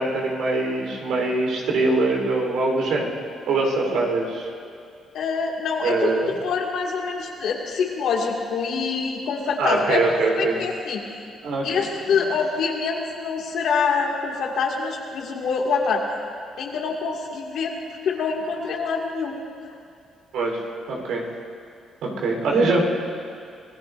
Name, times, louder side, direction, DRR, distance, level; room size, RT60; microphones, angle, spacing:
voice 1, 0.0-3.1 3.5-4.5 5.8-6.3 9.6-10.6 11.4-11.8 20.3-20.6 20.9-21.2 22.0-22.8, right 3 dB, 85° right, 0 dB, 3.9 m, -23 dB
voice 2, 5.1-10.0 10.4-11.0 11.6-16.1 16.6-17.7 18.0-19.4, left 5 dB, 75° left, 0 dB, 2.2 m, -25 dB
25.5 x 19.0 x 2.7 m, 2.4 s
cardioid pair, 90°, 0 cm